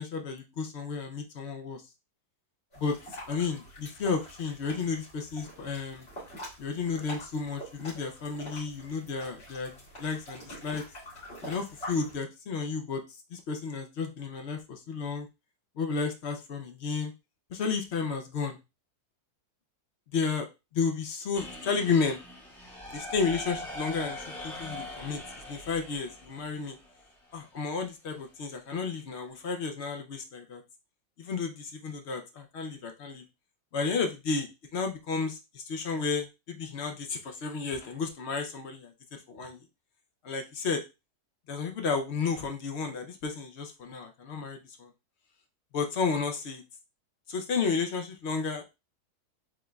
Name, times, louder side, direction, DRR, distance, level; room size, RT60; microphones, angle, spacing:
voice 1, 0.0-1.8 2.8-3.0 3.3-6.1 6.6-10.8 11.4-13.0 13.3-15.3 15.8-17.1 17.5-18.6 20.1-20.5 20.7-22.2 22.9-26.8 27.3-30.6 31.2-33.2 33.7-39.7 40.2-40.8 41.5-44.9 45.7-46.6 47.3-48.6, left 5 dB, 60° left, 5 dB, 0.7 m, -32 dB
sound 1, 2.7-12.2, equal, 40° left, 2.3 m, -45 dB
sound 2, 21.3-27.3, left 1 dB, ahead, 1.8 m, -42 dB
4.9 x 3.7 x 2.3 m, 0.26 s
omnidirectional pair, 1.7 m